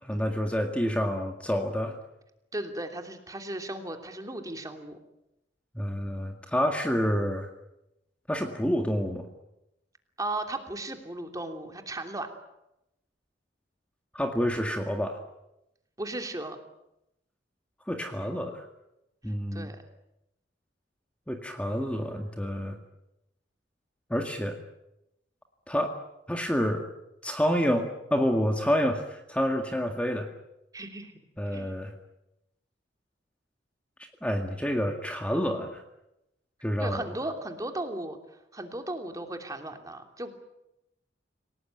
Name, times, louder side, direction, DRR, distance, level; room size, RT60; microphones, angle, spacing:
voice 1, 0.0-1.9 5.7-7.5 8.3-9.3 14.1-15.2 17.9-18.7 19.2-19.7 21.3-22.8 24.1-24.6 25.7-25.9 26.3-26.8 27.2-30.3 31.4-31.9 34.2-35.8 36.6-37.0, equal, 5° left, 3 dB, 2.0 m, -28 dB
voice 2, 2.5-5.0 10.2-12.3 16.0-16.6 19.5-19.8 30.7-31.1 31.5-31.8 36.8-38.2 38.5-40.3, right 1 dB, 20° right, 5 dB, 3.0 m, -36 dB
28.5 x 18.5 x 9.3 m, 0.89 s
head